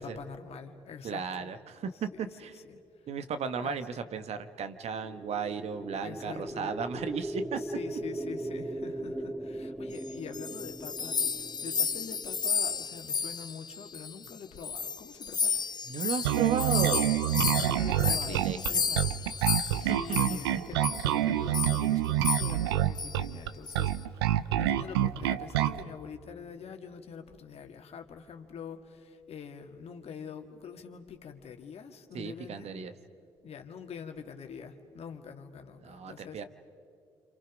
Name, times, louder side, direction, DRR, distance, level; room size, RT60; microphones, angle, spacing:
voice 1, 0.0-1.5 1.9-2.8 3.6-3.8 6.0-6.7 7.5-15.6 17.3-19.1 19.8-32.8 33.4-36.4, left 6 dB, 55° left, 5 dB, 2.1 m, -45 dB
voice 2, 1.0-2.5 3.1-7.6 15.9-17.2 18.1-18.8 19.8-20.0 32.1-32.9 35.8-36.4, right 6 dB, 60° right, 10 dB, 1.3 m, -35 dB
sound 1, 4.9-13.0, right 1 dB, 10° right, 1.0 m, -39 dB
sound 2, 10.1-14.3 14.6-20.5 20.8-21.1 21.5-21.9 22.2-22.7 23.0-23.2 23.7-23.9, left 6 dB, 35° left, 0.8 m, -32 dB
Bass guitar, 16.2-25.8, right 13 dB, 90° right, 0.5 m, -27 dB
28.5 x 27.5 x 5.2 m, 2.5 s
hypercardioid pair, 50°, 13 cm